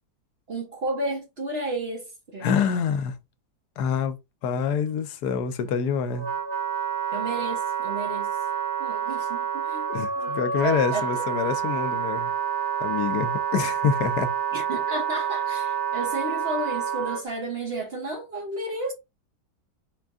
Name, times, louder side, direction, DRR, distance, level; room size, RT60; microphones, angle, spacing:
voice 1, 0.5-2.5 7.1-8.3 8.8-9.9 10.2-10.3 10.6-11.2 14.5-18.9, right 2 dB, 45° right, 0.9 m, -32 dB
voice 2, 2.4-3.1 3.8-4.2 4.4-6.3 9.9-12.3 12.8-14.3, left 7 dB, 75° left, 1.1 m, -26 dB
Wind instrument woodwind instrument, 5.6-17.2, right 7 dB, 80° right, 1.8 m, -28 dB
3.8 x 2.5 x 3.4 m
omnidirectional pair, 1.8 m